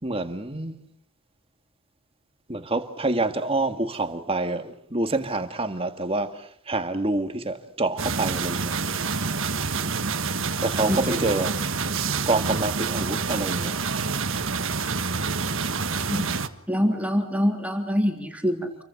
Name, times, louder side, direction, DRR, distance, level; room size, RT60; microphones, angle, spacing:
voice 1, 0.0-0.7 2.5-8.7 10.6-11.6 12.3-13.7, right 2 dB, 25° right, 1.9 m, -27 dB
sound 1, 8.0-16.5, right 4 dB, 60° right, 1.6 m, -27 dB
voice 2, 10.9-11.3 15.5-16.3 16.7-18.8, equal, 5° right, 3.3 m, -26 dB
28.5 x 23.5 x 6.1 m
head